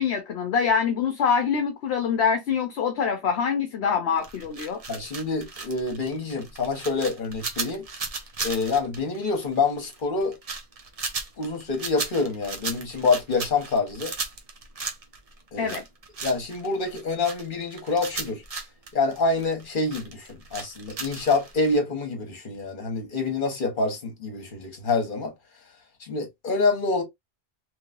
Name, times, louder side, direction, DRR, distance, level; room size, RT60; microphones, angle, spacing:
voice 1, 0.0-4.8 15.6-15.8, left 6 dB, 70° left, 0.9 m, -25 dB
sound 1, 4.2-21.8, right 4 dB, 40° right, 0.7 m, -36 dB
voice 2, 4.9-7.8 8.4-10.4 11.4-14.1 15.5-15.7 16.2-18.4 18.9-25.3 26.0-27.0, left 3 dB, 50° left, 1.3 m, -26 dB
3.1 x 3.0 x 2.4 m
omnidirectional pair, 1.2 m